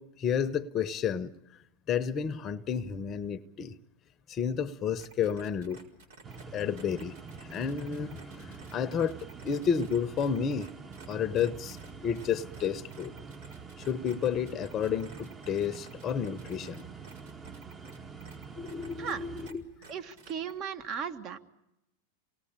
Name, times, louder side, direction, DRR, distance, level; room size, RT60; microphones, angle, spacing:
voice 1, 0.0-1.3 1.9-3.8 4.3-5.9 6.5-7.1 7.4-10.7 11.1-11.8 12.0-13.1 13.8-16.8 18.6-19.6, left 7 dB, 35° left, 0.8 m, -31 dB
sound 1, 5.0-19.5 19.8-20.5, right 4 dB, 75° right, 5.0 m, -53 dB
sound 2, 6.2-19.5, right 5 dB, 20° right, 1.3 m, -46 dB
voice 2, 19.9-21.4, right 7 dB, 40° right, 1.6 m, -36 dB
27.5 x 19.0 x 8.8 m
hypercardioid pair, 105°, 0 cm